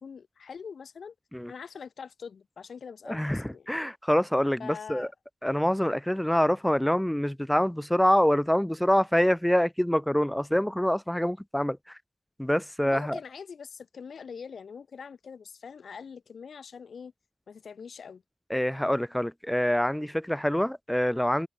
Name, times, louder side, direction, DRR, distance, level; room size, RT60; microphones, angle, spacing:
voice 1, 0.0-1.1 1.5-3.7 4.6-5.1 12.8-17.1 17.5-18.2, left 6 dB, 60° left, 3.3 m, -43 dB
voice 2, 3.1-5.1 5.4-12.0 12.4-13.2 18.5-21.5, equal, 5° left, 1.2 m, -25 dB
wide cardioid pair, 115°, 0 cm